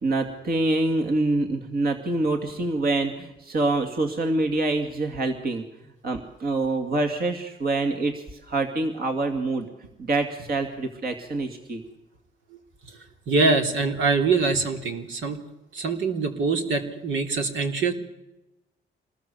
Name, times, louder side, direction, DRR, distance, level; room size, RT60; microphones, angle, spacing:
voice 1, 0.0-5.6 6.0-9.7 10.0-11.8, right 2 dB, 50° right, 4 dB, 2.5 m, -26 dB
voice 2, 13.3-15.4 15.7-17.9, right 4 dB, 75° right, 4 dB, 3.4 m, -24 dB
26.5 x 20.0 x 7.1 m, 0.95 s
cardioid pair, 90°, 20 cm